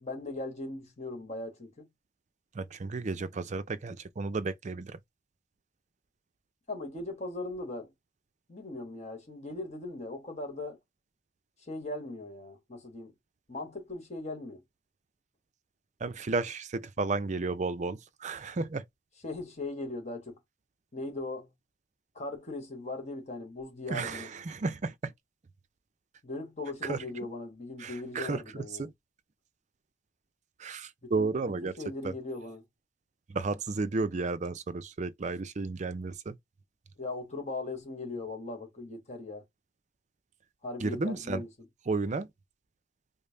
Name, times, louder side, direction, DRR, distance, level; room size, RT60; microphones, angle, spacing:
voice 1, 0.0-1.9 6.7-7.9 8.5-10.8 11.6-13.1 13.5-14.6 19.2-20.4 20.9-21.5 22.1-24.3 26.2-28.9 31.0-31.3 31.6-32.6 37.0-39.4 40.6-41.5, left 2 dB, 35° left, 1.1 m, -39 dB
voice 2, 2.5-5.0 16.0-18.8 23.9-25.1 26.8-27.0 27.8-28.4 28.8-28.9 30.6-31.8 32.0-32.1 33.3-36.3 40.8-41.4 41.9-42.3, right 3 dB, 35° right, 0.4 m, -33 dB
5.2 x 2.0 x 2.6 m
head